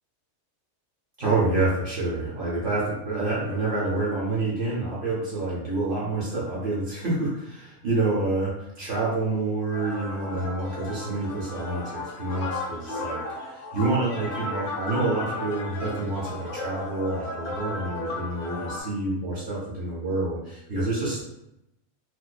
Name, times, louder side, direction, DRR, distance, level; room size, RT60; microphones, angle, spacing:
voice 1, 1.2-21.2, right 2 dB, 45° right, -6 dB, 0.8 m, -28 dB
sound 1, 9.7-18.8, left 2 dB, 60° left, 0.7 m, -35 dB
2.5 x 2.1 x 2.3 m, 0.85 s
omnidirectional pair, 1.5 m